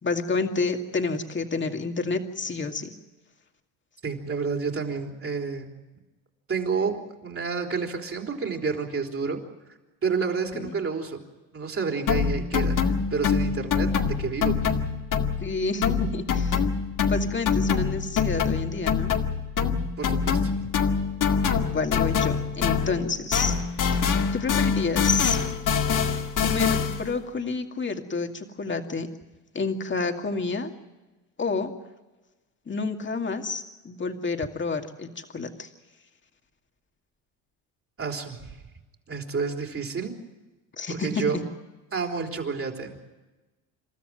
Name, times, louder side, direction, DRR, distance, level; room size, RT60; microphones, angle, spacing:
voice 1, 0.0-2.9 10.5-10.7 15.4-16.6 17.1-19.2 21.5-23.5 23.9-24.0 24.3-25.4 26.4-29.1 29.5-30.7 31.4-31.7 32.7-35.7 40.8-41.4, left 4 dB, 30° left, 4 dB, 2.3 m, -29 dB
voice 2, 4.0-5.7 6.5-9.4 10.0-11.2 11.5-14.8 20.0-20.5 38.0-38.6 39.1-40.2 40.9-41.4 41.9-42.9, right 5 dB, 35° right, 2 dB, 3.7 m, -30 dB
sound 1, 12.1-15.5 15.8-23.1 23.3-27.1, left 6 dB, 50° left, 2.1 m, -25 dB
28.0 x 13.5 x 9.2 m, 1.1 s
supercardioid pair, 90°, 40 cm